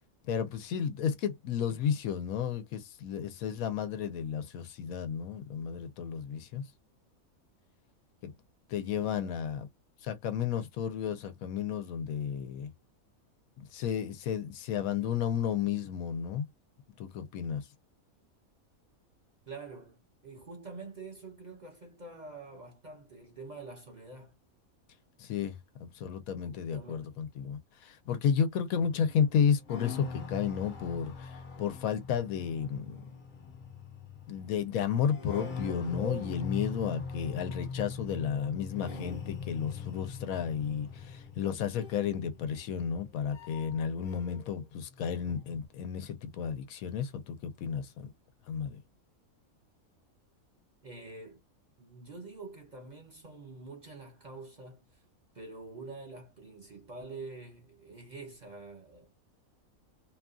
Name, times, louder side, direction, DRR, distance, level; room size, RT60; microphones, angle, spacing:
voice 1, 0.2-6.6 8.2-8.3 8.7-9.7 10.0-12.7 13.6-16.5 17.0-17.6 25.2-33.0 34.3-48.1 48.5-48.8, left 8 dB, 80° left, 1.1 m, -32 dB
voice 2, 8.8-9.6 19.5-24.4 26.4-27.2 50.8-51.4 51.8-55.0 55.3-59.1, right 3 dB, 40° right, 0.7 m, -47 dB
sound 1, 28.8-44.5 44.8-45.7, left 4 dB, 45° left, 0.8 m, -42 dB
2.8 x 2.3 x 2.4 m
omnidirectional pair, 1.5 m